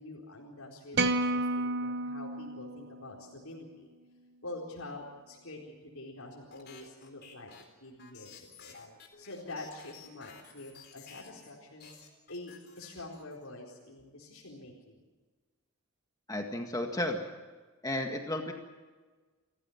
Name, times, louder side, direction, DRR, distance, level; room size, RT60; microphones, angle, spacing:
voice 1, 0.0-3.9 4.4-7.5 7.8-11.9 12.3-15.0, left 2 dB, 85° left, -2 dB, 4.3 m, -46 dB
sound 1, 0.9-3.3, right 2 dB, 50° right, 1.1 m, -31 dB
sound 2, 6.5-11.5 11.8-13.5, left 6 dB, 50° left, 3.9 m, -53 dB
voice 2, 16.3-17.2 17.8-18.5, left 1 dB, 15° left, 3 dB, 1.8 m, -33 dB
29.0 x 15.5 x 7.2 m, 1.3 s
head